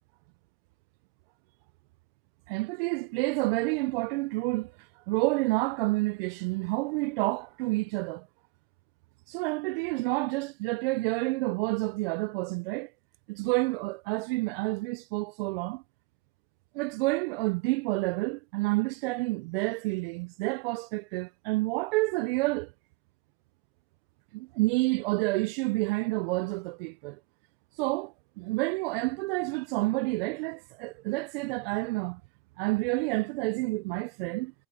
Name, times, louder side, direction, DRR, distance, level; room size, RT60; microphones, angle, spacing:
voice 1, 2.5-8.3 9.3-12.9 13.3-15.8 16.7-22.7 24.3-27.2 27.8-32.2 32.6-34.5, right 24 dB, 65° right, 0.6 m, -29 dB
hypercardioid pair, 95°, 31 cm